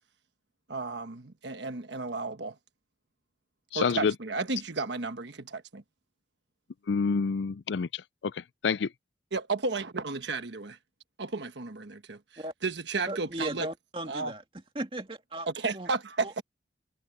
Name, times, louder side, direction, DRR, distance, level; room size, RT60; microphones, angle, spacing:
voice 1, 0.7-2.5 3.7-5.8 9.3-10.8 11.2-12.2 12.6-13.7 14.1-14.3 15.6-16.4, right 3 dB, 80° right, 1.3 m, -33 dB
voice 2, 3.7-4.1 6.9-8.3 8.6-8.9, left 5 dB, 80° left, 0.4 m, -27 dB
voice 3, 13.0-14.4 14.7-15.9 16.2-16.4, right 1 dB, 30° right, 2.2 m, -37 dB
head